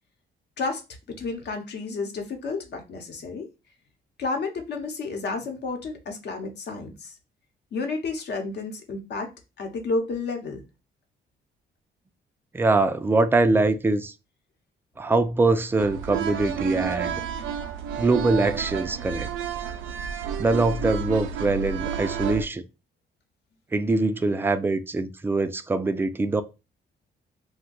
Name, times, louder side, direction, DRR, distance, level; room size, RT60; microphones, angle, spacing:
voice 1, 1.2-3.5 4.2-7.1 7.7-9.3 9.6-10.6, left 3 dB, 60° left, 0.9 m, -31 dB
voice 2, 12.5-14.1 15.0-17.2 18.0-19.3 20.4-22.6 23.7-26.4, right 3 dB, 10° right, 0.3 m, -23 dB
sound 1, 15.8-22.4, right 7 dB, 80° right, 0.4 m, -31 dB
2.6 x 2.2 x 3.8 m
cardioid pair, 90°, 20 cm